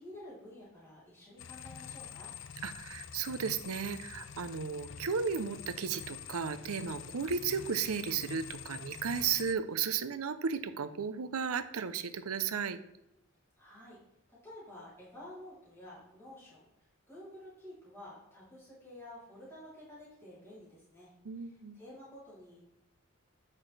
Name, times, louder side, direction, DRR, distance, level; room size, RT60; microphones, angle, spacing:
voice 1, 0.0-2.3 13.6-14.0 14.3-21.1 21.4-22.6, left 1 dB, 10° left, -10 dB, 3.1 m, -51 dB
sound 1, 1.4-9.5, left 7 dB, 60° left, 0.4 m, -46 dB
voice 2, 2.6-12.8 21.2-21.8, right 6 dB, 90° right, 12 dB, 0.6 m, -34 dB
8.6 x 6.0 x 3.2 m, 0.87 s
head